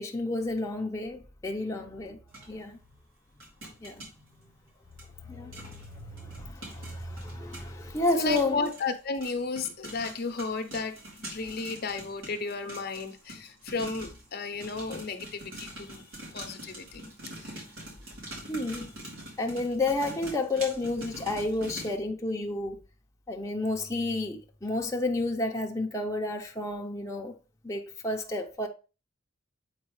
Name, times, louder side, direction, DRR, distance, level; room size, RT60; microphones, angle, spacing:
voice 1, 0.0-2.2 2.5-2.8 3.8-4.5 5.3-8.6 18.5-18.9 19.4-22.8 23.3-27.3 27.6-28.7, left 2 dB, 15° left, 0.7 m, -31 dB
sound 1, 2.3-2.5 3.4-4.1 5.0-5.1 5.5-5.9 6.2-14.3 14.6-21.9, right 1 dB, 90° right, 3.6 m, -44 dB
voice 2, 8.1-16.1 16.3-17.1 17.4-17.6, left 4 dB, 50° left, 0.8 m, -33 dB
8.0 x 4.7 x 3.1 m
head